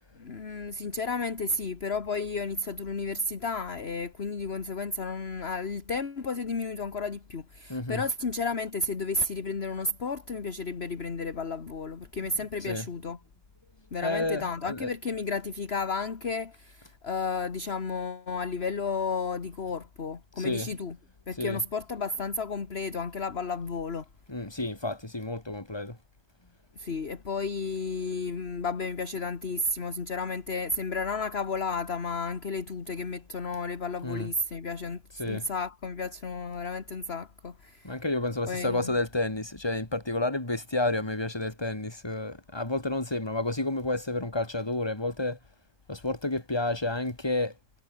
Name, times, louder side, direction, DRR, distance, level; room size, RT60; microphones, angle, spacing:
voice 1, 0.2-13.2 13.9-21.0 21.3-24.1 26.8-37.9 38.5-39.0, left 3 dB, 35° left, 1.7 m, -32 dB
voice 2, 7.7-8.0 12.6-12.9 14.0-14.9 20.4-20.7 21.4-21.6 24.3-26.0 34.0-34.3 35.2-35.4 37.8-45.4 45.9-47.5, left 2 dB, 15° left, 2.9 m, -30 dB
omnidirectional pair, 2.0 m